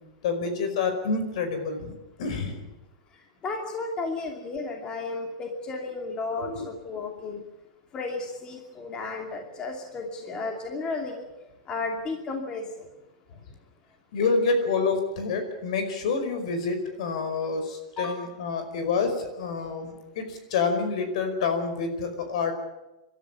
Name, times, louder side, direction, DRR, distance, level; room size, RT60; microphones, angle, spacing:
voice 1, 0.2-1.9 2.2-2.7 6.4-6.7 14.1-22.5, left 4 dB, 65° left, 7 dB, 5.1 m, -28 dB
voice 2, 3.4-7.4 7.9-11.3 11.7-12.9 18.0-18.2, left 3 dB, 20° left, 2 dB, 2.8 m, -33 dB
25.5 x 13.0 x 9.8 m, 0.98 s
supercardioid pair, 150°, 4 cm